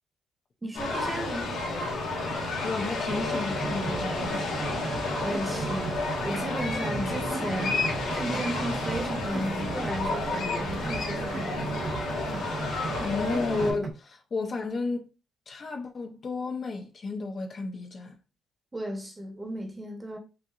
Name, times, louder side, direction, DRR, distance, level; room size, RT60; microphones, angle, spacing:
voice 1, 0.6-1.5 5.2-6.0 6.2-11.8 18.7-20.2, equal, 20° right, 1.1 m, -35 dB
sound 1, 0.7-13.7, left 2 dB, 85° left, 2.1 m, -31 dB
voice 2, 2.6-4.8 6.9-7.2 13.0-15.1 15.5-18.2, left 3 dB, 45° left, 0.7 m, -32 dB
sound 2, 3.1-13.9, right 3 dB, 40° right, 0.7 m, -36 dB
5.7 x 2.6 x 2.4 m
cardioid pair, 90°, 0 cm